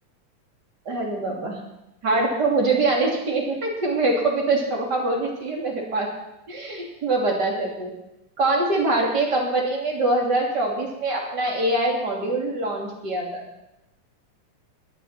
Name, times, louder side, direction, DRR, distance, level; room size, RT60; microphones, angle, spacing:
voice 1, 0.8-1.6 2.0-6.1 6.5-7.9 8.4-13.4, right 2 dB, 35° right, -1 dB, 3.5 m, -24 dB
21.0 x 12.0 x 4.4 m, 0.90 s
omnidirectional pair, 3.5 m